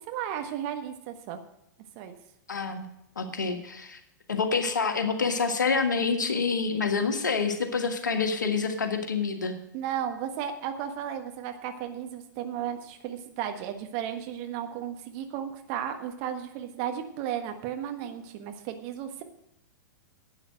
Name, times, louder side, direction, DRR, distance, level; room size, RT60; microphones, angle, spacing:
voice 1, 0.0-1.4 1.9-2.1 9.7-19.2, right 9 dB, 40° right, 6 dB, 1.5 m, -34 dB
voice 2, 2.5-2.8 3.1-4.0 4.3-9.5, left 5 dB, 70° left, 7 dB, 1.6 m, -27 dB
11.5 x 8.7 x 6.3 m, 0.80 s
figure-of-eight pair, 100°, 10 cm